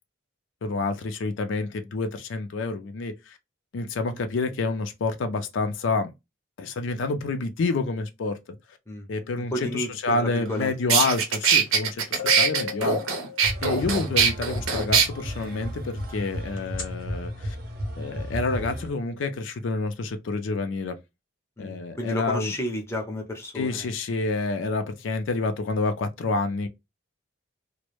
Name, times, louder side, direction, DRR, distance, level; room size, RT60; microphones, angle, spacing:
voice 1, 0.6-3.4 3.7-6.1 6.6-8.4 9.1-13.0 13.6-17.6 18.0-21.0 21.6-22.6 23.5-26.7, left 3 dB, 70° left, 0.4 m, -28 dB
voice 2, 9.5-10.7 21.6-23.9, left 1 dB, 15° left, 0.5 m, -32 dB
sound 1, 10.5-10.6 10.9-15.1, right 6 dB, 85° right, 0.7 m, -22 dB
sound 2, 11.7-11.8 12.2-13.9 16.6-16.8, left 8 dB, 85° left, 0.9 m, -34 dB
sound 3, 13.4-18.9, equal, 45° right, 0.6 m, -33 dB
2.1 x 2.0 x 2.9 m
head